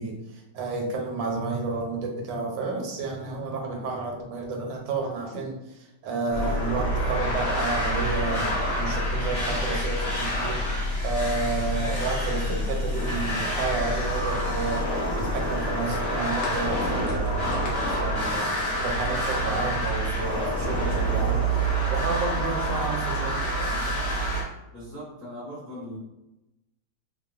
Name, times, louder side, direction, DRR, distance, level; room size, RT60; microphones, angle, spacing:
voice 1, 0.0-14.9 15.2-17.7 18.0-24.0, right 3 dB, 90° right, 1 dB, 1.3 m, -31 dB
sound 1, 6.3-24.4, right 1 dB, 45° left, 1.0 m, -27 dB
sound 2, 15.1-19.3 19.7-21.8 22.8-23.6, left 2 dB, 80° left, 0.6 m, -43 dB
voice 2, 24.7-26.0, equal, 20° left, -8 dB, 0.3 m, -39 dB
2.9 x 2.2 x 2.3 m, 0.93 s
omnidirectional pair, 1.9 m